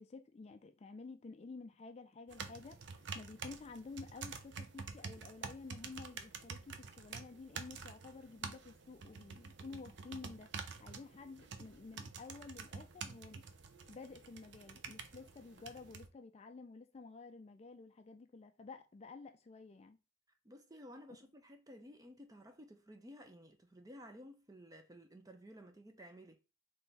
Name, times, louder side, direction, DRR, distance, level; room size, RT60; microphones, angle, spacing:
voice 1, 0.0-10.5 10.8-13.4 13.9-20.0, left 4 dB, 30° left, 0.3 m, -51 dB
sound 1, 2.3-16.1, right 5 dB, 60° right, 0.6 m, -48 dB
voice 2, 20.4-26.4, equal, 20° right, 0.6 m, -55 dB
3.7 x 3.4 x 4.0 m
head